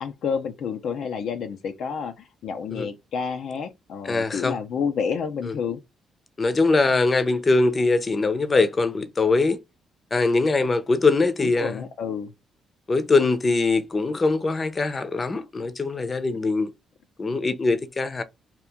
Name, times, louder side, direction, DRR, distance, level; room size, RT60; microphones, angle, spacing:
voice 1, 0.0-5.8 11.4-12.3, left 6 dB, 70° left, 0.5 m, -29 dB
voice 2, 4.0-4.6 5.4-5.5 6.4-9.6 10.1-11.8 12.9-16.7 17.2-18.2, left 3 dB, 30° left, 0.6 m, -22 dB
2.9 x 2.5 x 3.5 m
cardioid pair, 90°, 0 cm